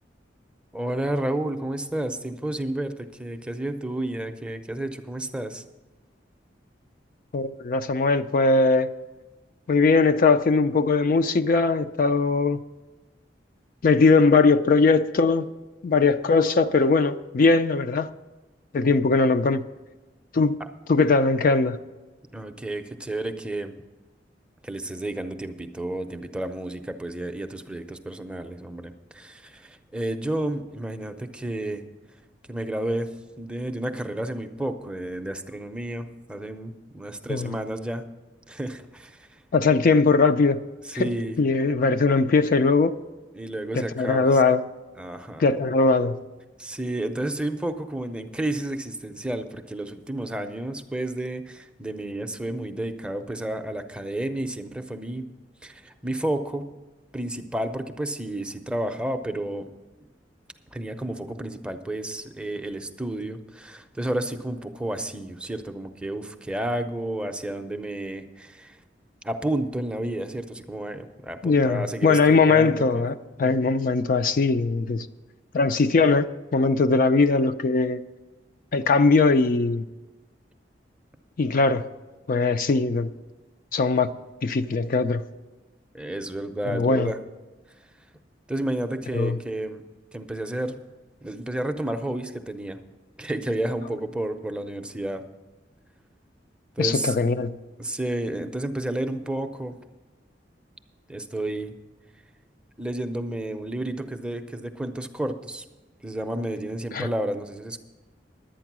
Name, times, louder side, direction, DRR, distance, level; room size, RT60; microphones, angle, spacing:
voice 1, 0.7-5.6 22.3-23.7 24.6-31.8 32.5-33.1 33.4-38.0 38.5-39.4 39.7-39.8 40.8-41.4 43.3-44.4 45.0-45.5 46.6-55.3 55.6-56.7 57.1-59.7 60.7-68.8 69.2-73.0 73.4-73.7 78.8-78.9 85.9-87.2 88.5-89.8 90.1-90.8 91.2-92.8 93.2-95.2 96.8-97.2 97.8-99.8 101.1-101.7 102.8-105.6 106.0-107.8, right 1 dB, 5° right, 0.6 m, -31 dB
voice 2, 7.3-8.9 9.7-12.6 13.8-15.5 15.8-18.1 18.7-19.6 20.3-20.6 20.9-21.8 37.3-37.5 39.5-40.6 40.9-41.1 41.4-43.0 43.7-44.6 45.4-46.2 71.4-75.1 75.5-76.3 76.5-78.0 78.7-79.8 81.4-81.9 82.3-83.1 83.7-84.1 84.4-85.2 86.6-87.1 89.1-89.4 96.8-97.5 106.9-107.1, left 4 dB, 50° left, 0.4 m, -20 dB
11.5 x 8.8 x 6.0 m
head